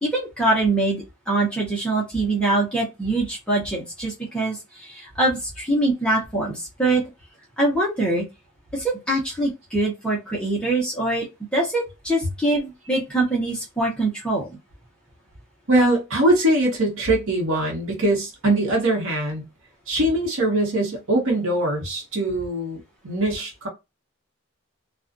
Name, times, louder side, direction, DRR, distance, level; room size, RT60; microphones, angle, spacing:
voice 1, 0.0-7.0 7.6-8.2 8.7-11.3 11.5-14.5, right 2 dB, 5° left, 0.7 m, -23 dB
voice 2, 15.7-19.5 19.9-23.7, right 1 dB, 75° right, 1.0 m, -22 dB
2.4 x 2.3 x 2.5 m
head